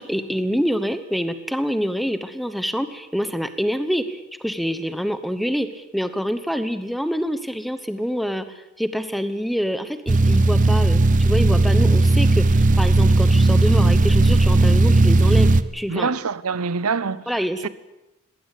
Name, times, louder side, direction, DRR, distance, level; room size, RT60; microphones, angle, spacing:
voice 1, 0.0-8.5 8.8-16.1 17.3-17.7, equal, ahead, 1.0 m, -26 dB
sound 1, 10.1-15.6, right 2 dB, 35° right, 0.6 m, -16 dB
voice 2, 15.9-17.7, right 5 dB, 85° right, 0.7 m, -26 dB
20.5 x 16.5 x 8.5 m
head